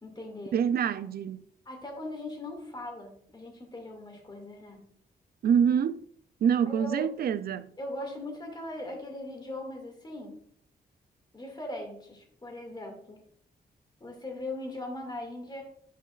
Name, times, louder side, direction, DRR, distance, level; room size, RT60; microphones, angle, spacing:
voice 1, 0.0-0.6 1.7-4.9 6.7-7.1 7.8-10.4 11.3-13.2 14.0-15.6, left 1 dB, 25° left, 2.1 m, -39 dB
voice 2, 0.5-1.5 5.4-6.0 6.4-7.7, right 8 dB, 65° right, 0.4 m, -26 dB
8.6 x 5.3 x 2.4 m
cardioid pair, 90°, 17 cm